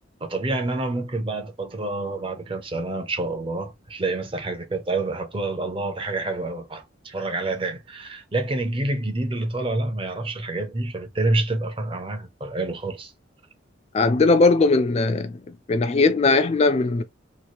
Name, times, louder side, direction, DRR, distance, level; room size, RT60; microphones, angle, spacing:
voice 1, 0.2-13.1, right 2 dB, 30° right, 0.5 m, -28 dB
voice 2, 13.9-15.3 15.7-17.0, left 3 dB, 35° left, 0.3 m, -19 dB
2.9 x 2.4 x 2.9 m
head